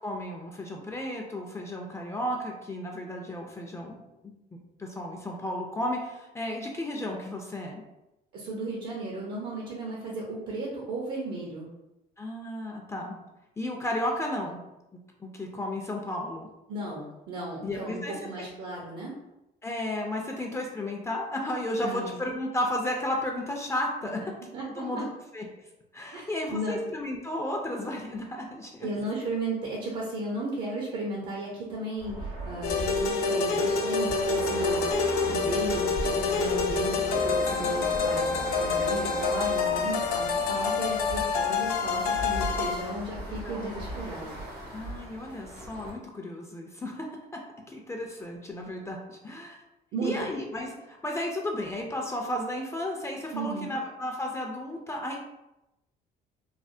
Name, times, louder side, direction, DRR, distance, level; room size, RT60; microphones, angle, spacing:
voice 1, 0.0-7.8 12.2-13.2 13.6-14.6 14.9-16.5 17.6-18.5 19.6-24.2 24.8-25.1 25.3-25.4 25.9-28.9 43.4-43.7 44.7-47.1 47.3-47.4 47.7-49.6 50.0-55.2, left 1 dB, 15° left, 0 dB, 0.4 m, -33 dB
voice 2, 8.3-11.7 16.7-19.1 21.8-22.1 24.2-24.3 24.5-25.0 26.1-26.8 28.8-44.8 49.9-50.3 53.3-53.7, right 2 dB, 70° right, -3 dB, 0.7 m, -35 dB
sound 1, 32.0-45.9, equal, 90° right, 1.3 m, -38 dB
sound 2, 32.6-42.9, left 4 dB, 70° left, 0.5 m, -27 dB
3.2 x 2.0 x 2.6 m, 0.93 s
cardioid pair, 110°, 17 cm